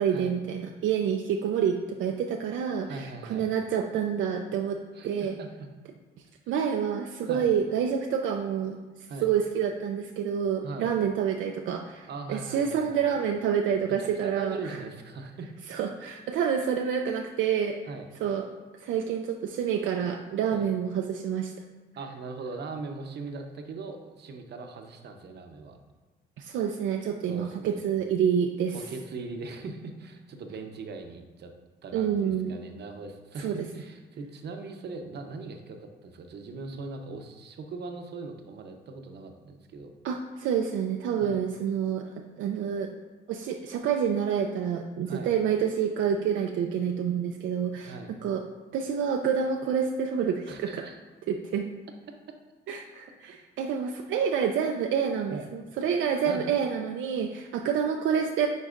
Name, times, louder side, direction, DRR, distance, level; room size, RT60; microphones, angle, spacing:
voice 1, 0.0-4.8 5.0-5.4 6.5-8.8 9.2-14.8 15.7-17.8 18.2-18.4 18.8-21.5 26.4-28.8 31.9-32.6 33.4-33.6 40.0-42.1 42.4-42.9 43.3-48.0 48.2-48.4 48.7-50.9 51.3-51.7 52.7-58.5, right 7 dB, 80° right, 4 dB, 0.5 m, -28 dB
voice 2, 2.8-3.4 4.9-5.7 6.5-6.6 7.2-7.5 9.1-9.3 10.6-10.9 12.1-13.2 13.8-15.5 17.9-18.1 20.5-20.6 22.0-25.8 27.3-27.8 28.7-31.5 31.8-39.9 41.2-41.4 45.1-45.3 47.8-48.1 50.5-51.0 53.2-53.4 55.3-55.5 56.3-56.5, right 3 dB, 55° right, 5 dB, 0.8 m, -40 dB
9.6 x 4.0 x 2.5 m, 1.4 s
cardioid pair, 90°, 20 cm